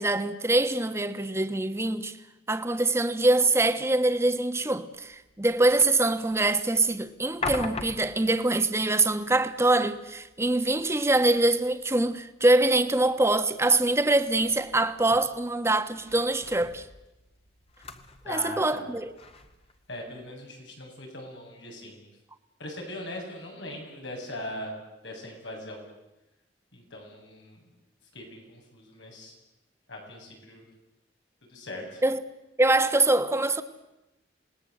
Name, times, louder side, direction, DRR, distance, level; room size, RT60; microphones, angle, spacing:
voice 1, 0.0-2.2 2.5-16.8 18.3-19.1 32.0-32.2 32.6-33.6, right 2 dB, 15° right, 1.3 m, -24 dB
sound 1, 4.9-20.3, left 3 dB, 35° left, 1.8 m, -44 dB
voice 2, 18.2-18.9 19.9-22.0 22.6-24.7 25.0-25.9 26.7-27.6 28.1-29.3 29.9-30.6 31.5-32.0, left 1 dB, 85° left, 7.6 m, -40 dB
27.5 x 20.0 x 8.0 m
head